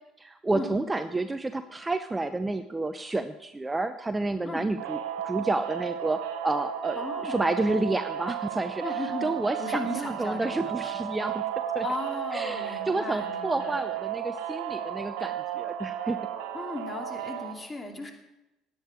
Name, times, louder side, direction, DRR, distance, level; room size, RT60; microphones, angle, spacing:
voice 1, 0.2-5.0 5.2-11.4 11.7-11.9 12.3-16.2, right 2 dB, 15° right, 9 dB, 0.7 m, -30 dB
sound 1, 4.8-17.5, right 10 dB, 60° right, 1.4 m, -34 dB
voice 2, 7.0-7.6 8.8-9.3 9.6-11.0 11.8-13.8 16.5-18.1, left 2 dB, 25° left, 3 dB, 2.6 m, -36 dB
17.0 x 9.5 x 4.6 m, 0.94 s
figure-of-eight pair, 60°, 0 cm